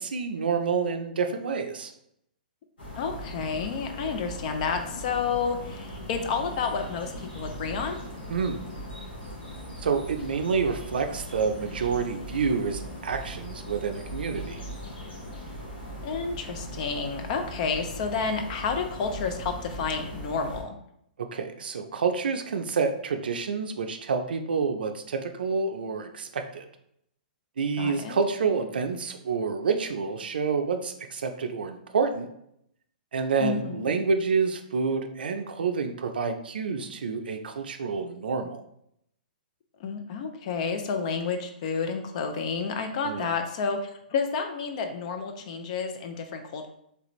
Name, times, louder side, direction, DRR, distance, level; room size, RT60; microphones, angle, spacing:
voice 1, 0.0-1.9 8.3-8.6 9.8-14.6 21.2-26.6 27.6-32.3 33.1-38.6 43.0-43.3, right 5 dB, 85° right, 6 dB, 0.4 m, -28 dB
sound 1, 2.8-20.6, equal, 85° left, 1.5 m, -39 dB
voice 2, 2.9-8.0 16.0-20.8 27.8-28.2 33.4-33.9 39.8-46.7, left 5 dB, 50° left, 6 dB, 0.5 m, -30 dB
3.3 x 2.5 x 3.0 m, 0.74 s
hypercardioid pair, 140°, 5 cm